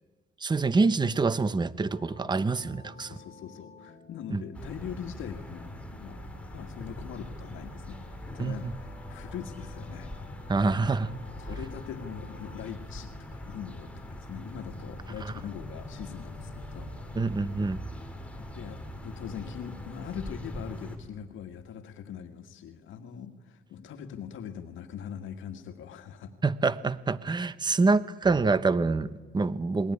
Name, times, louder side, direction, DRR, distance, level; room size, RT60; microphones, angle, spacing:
voice 1, 0.4-3.2 4.3-4.4 8.4-8.7 10.5-11.1 15.2-15.3 17.1-17.8 26.4-29.9, right 3 dB, 20° right, 15 dB, 1.0 m, -26 dB
sound 1, 1.9-20.2, left 5 dB, 55° left, 4.6 m, -53 dB
voice 2, 3.0-6.2 6.5-10.1 10.6-10.9 11.4-16.9 18.4-26.3, left 8 dB, 75° left, 5 dB, 1.8 m, -42 dB
sound 2, 4.5-21.0, left 1 dB, 5° left, 4.2 m, -42 dB
28.0 x 21.5 x 9.7 m, 1.4 s
cardioid pair, 90°, 20 cm